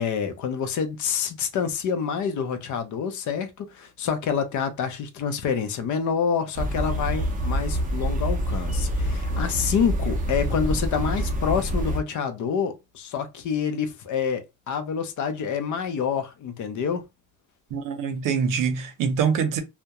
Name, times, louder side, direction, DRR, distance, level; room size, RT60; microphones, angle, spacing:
voice 1, 0.0-17.0, left 7 dB, 65° left, 0.5 m, -27 dB
sound 1, 6.5-12.0, equal, 25° right, 0.5 m, -26 dB
voice 2, 17.7-19.6, right 6 dB, 75° right, 0.7 m, -24 dB
2.3 x 2.1 x 2.8 m
cardioid pair, 175°, 32 cm